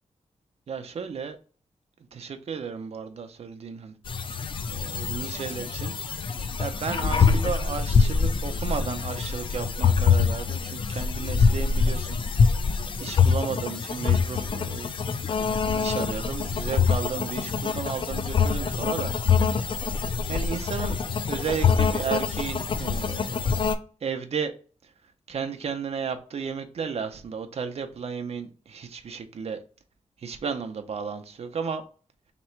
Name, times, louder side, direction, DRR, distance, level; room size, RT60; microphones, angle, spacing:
voice 1, 0.7-1.4 2.1-3.9 4.7-5.9 6.6-12.2 13.0-14.9 15.5-19.1 20.3-21.0 21.3-23.7 24.0-24.5 25.3-29.6 30.2-31.8, right 6 dB, 55° right, 0.6 m, -33 dB
sound 1, 4.1-23.8, left 5 dB, 40° left, 0.4 m, -25 dB
3.2 x 3.0 x 4.4 m
wide cardioid pair, 170°, 13 cm